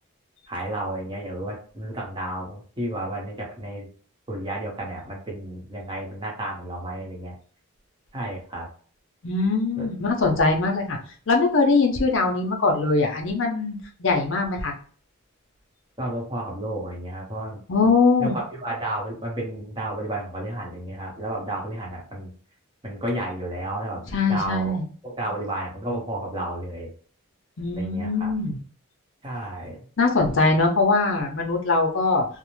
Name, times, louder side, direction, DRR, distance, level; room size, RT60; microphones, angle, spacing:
voice 1, 0.5-3.9 4.3-7.3 8.1-8.7 9.8-9.9 16.0-17.6 18.2-22.3 22.8-24.8 25.0-26.9 27.8-28.3 29.2-29.8, right 1 dB, 20° right, -2 dB, 0.8 m, -32 dB
voice 2, 9.2-11.0 11.3-14.7 17.7-18.3 24.1-24.8 27.6-28.6 30.0-32.2, left 3 dB, 60° left, 2 dB, 0.6 m, -22 dB
2.6 x 2.0 x 3.0 m, 0.43 s
head